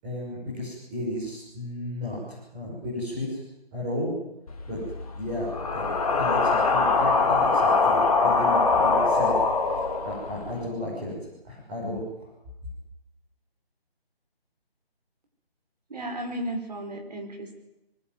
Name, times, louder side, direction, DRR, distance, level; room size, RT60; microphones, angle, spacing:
voice 1, 0.0-3.4 3.7-4.1 4.7-4.8 5.2-9.3 9.6-11.1 11.4-12.0, left 1 dB, 10° right, -9 dB, 6.6 m, -33 dB
sound 1, 4.5-10.6, left 4 dB, 35° left, 3.3 m, -23 dB
voice 2, 15.9-17.5, right 1 dB, 40° right, 3 dB, 5.1 m, -34 dB
23.5 x 20.0 x 9.7 m, 0.90 s
figure-of-eight pair, 175°, 31 cm